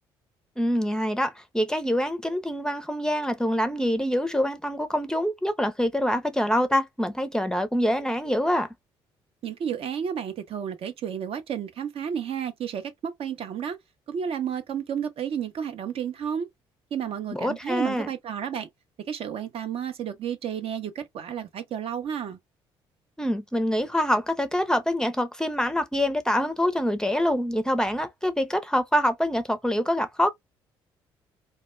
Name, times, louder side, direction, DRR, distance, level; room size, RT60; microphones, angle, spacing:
voice 1, 0.6-8.7 17.3-18.1 23.2-30.3, equal, 5° left, 0.4 m, -25 dB
voice 2, 9.4-13.8 14.1-16.5 16.9-18.7 19.1-22.4, right 8 dB, 60° right, 0.5 m, -31 dB
2.1 x 2.1 x 3.0 m
supercardioid pair, 60°, 11 cm